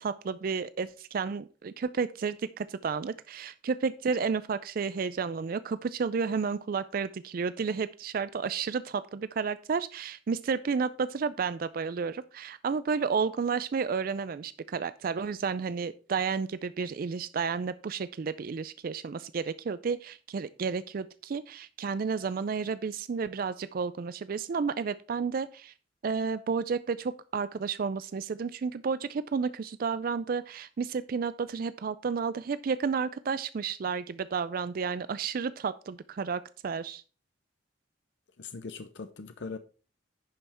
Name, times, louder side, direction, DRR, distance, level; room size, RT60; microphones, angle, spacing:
voice 1, 0.0-25.7 26.0-37.0, right 5 dB, 50° right, 0.4 m, -31 dB
voice 2, 38.4-39.6, left 4 dB, 70° left, 0.7 m, -40 dB
10.5 x 5.6 x 4.3 m
head